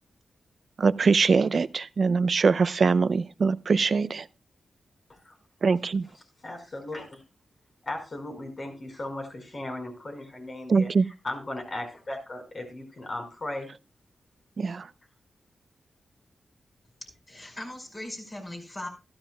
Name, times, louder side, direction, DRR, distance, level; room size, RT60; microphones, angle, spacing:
voice 1, 0.8-4.3 5.6-6.0 10.7-11.0 14.6-14.9, right 4 dB, 60° right, 0.5 m, -23 dB
voice 2, 6.4-7.2 7.8-10.9 11.2-13.7, left 1 dB, 50° left, 5.1 m, -37 dB
voice 3, 17.0-18.9, left 1 dB, 35° left, 5.3 m, -39 dB
14.5 x 13.0 x 2.4 m
cardioid pair, 45°, 0 cm